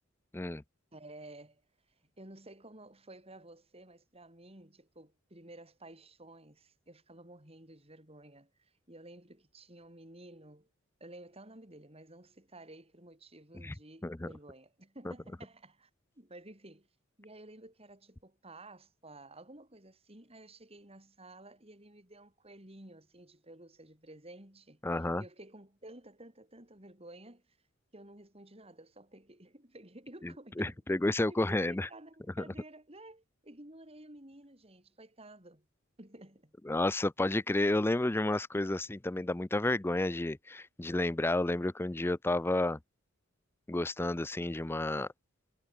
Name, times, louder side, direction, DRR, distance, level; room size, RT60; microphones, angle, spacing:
voice 1, 0.9-1.6 2.2-10.7 11.0-15.9 16.2-16.9 17.2-27.4 27.9-31.0 31.3-35.7 36.0-36.5, right 1 dB, 30° right, 5.2 m, -53 dB
voice 2, 24.8-25.2 30.2-31.9 32.4-32.5 36.6-42.8 43.7-45.1, left 2 dB, 10° left, 0.4 m, -31 dB
head